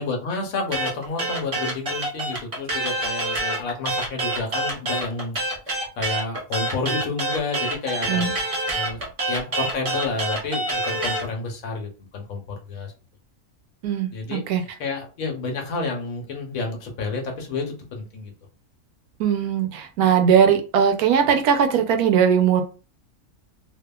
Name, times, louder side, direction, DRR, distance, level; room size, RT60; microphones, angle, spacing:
voice 1, 0.0-5.4 5.7-8.2 8.7-12.9 14.1-18.3, left 3 dB, 75° left, 2 dB, 1.1 m, -30 dB
sound 1, 0.7-11.3, right 2 dB, 35° right, 0.6 m, -26 dB
voice 2, 13.8-14.6 19.2-22.6, right 7 dB, 80° right, 6 dB, 1.0 m, -19 dB
2.7 x 2.4 x 2.2 m, 0.33 s
omnidirectional pair, 1.5 m